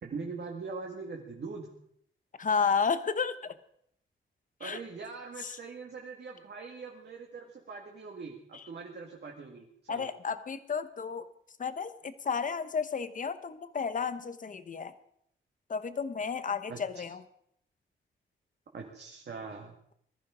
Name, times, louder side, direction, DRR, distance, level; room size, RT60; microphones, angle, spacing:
voice 1, 0.0-1.7 4.6-10.1 16.7-17.0 18.7-19.8, right 4 dB, 55° right, 0 dB, 2.0 m, -42 dB
voice 2, 2.4-3.5 4.6-4.8 5.4-5.6 8.5-8.6 9.9-11.3 11.6-14.9 15.7-17.2, left 6 dB, 40° left, 12 dB, 1.0 m, -32 dB
20.5 x 14.0 x 5.0 m, 0.72 s
wide cardioid pair, 170°, 21 cm